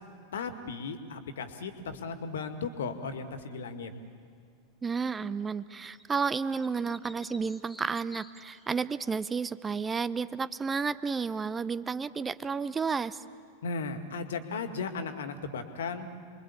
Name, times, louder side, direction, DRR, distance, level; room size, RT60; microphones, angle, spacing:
voice 1, 0.3-3.9 13.6-16.1, left 4 dB, 60° left, 8 dB, 2.1 m, -36 dB
voice 2, 4.8-13.2, right 5 dB, 15° right, 16 dB, 0.7 m, -31 dB
sound 1, 5.9-9.1, equal, ahead, 2.1 m, -52 dB
29.5 x 22.5 x 8.6 m, 2.3 s
figure-of-eight pair, 90°, 0 cm